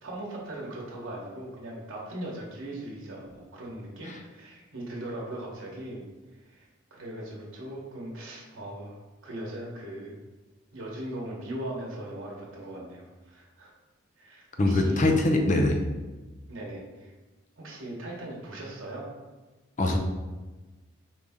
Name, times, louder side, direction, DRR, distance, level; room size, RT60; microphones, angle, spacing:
voice 1, 0.0-6.1 6.3-10.2 10.7-13.7 14.2-15.1 16.5-17.1 17.6-19.1, right 1 dB, 80° right, -3 dB, 1.1 m, -39 dB
voice 2, 14.6-15.8 19.8-20.0, left 2 dB, 35° left, 3 dB, 0.5 m, -22 dB
4.9 x 2.7 x 3.5 m, 1.2 s
head